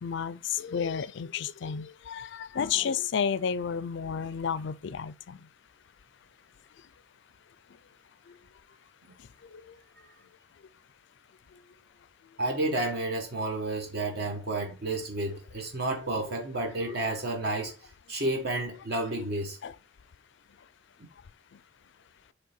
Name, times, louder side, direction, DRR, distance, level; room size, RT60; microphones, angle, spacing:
voice 1, 0.0-5.5 8.3-8.4 9.4-9.8 11.5-11.6 15.3-15.4 16.3-16.4 19.6-19.8 21.5-21.6, left 7 dB, 60° left, 0.4 m, -32 dB
voice 2, 12.4-17.7 18.1-19.6, right 2 dB, 55° right, 1.3 m, -31 dB
8.4 x 3.3 x 4.3 m
head